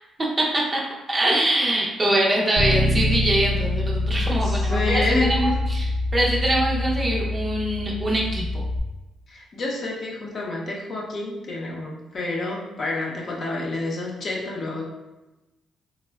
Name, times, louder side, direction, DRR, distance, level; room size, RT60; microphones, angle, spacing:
voice 1, 0.2-0.8 1.1-5.9 6.1-8.6, right 1 dB, 25° right, -3 dB, 0.6 m, -23 dB
Bass guitar, 2.6-8.8, left 1 dB, 65° right, 0.6 m, -25 dB
voice 2, 4.3-5.6 9.3-14.8, left 2 dB, 50° left, -2 dB, 0.6 m, -28 dB
3.3 x 2.1 x 2.2 m, 1.1 s
cardioid pair, 90°, 0 cm